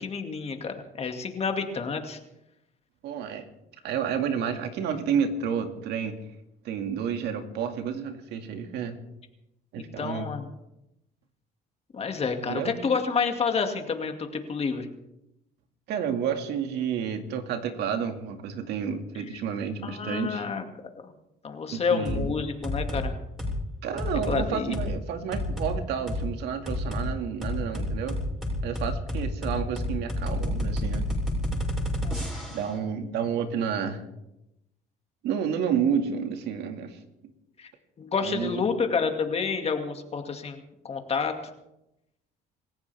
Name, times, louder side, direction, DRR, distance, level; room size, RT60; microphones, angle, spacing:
voice 1, 0.0-2.2 10.0-10.5 11.9-14.9 19.8-20.6 21.0-21.1 21.4-23.1 24.3-24.8 32.0-32.5 37.6-37.7 38.0-40.6 40.8-41.4, left 5 dB, 35° left, 5 dB, 2.2 m, -29 dB
voice 2, 3.0-3.5 3.8-6.2 6.6-9.0 9.7-10.3 12.5-12.8 15.9-20.5 21.7-22.3 23.8-28.2 28.6-31.1 32.5-34.0 35.2-37.0 38.2-38.6, right 7 dB, 80° right, 6 dB, 2.1 m, -30 dB
sound 1, 22.1-22.2 22.6-23.0 23.4-23.6 24.0-24.4 24.7-24.9 25.3-25.7 26.1-26.2 26.7-27.1 27.4-32.7, left 1 dB, 5° right, 6.6 m, -29 dB
27.0 x 15.0 x 3.5 m, 0.88 s
cardioid pair, 110°, 17 cm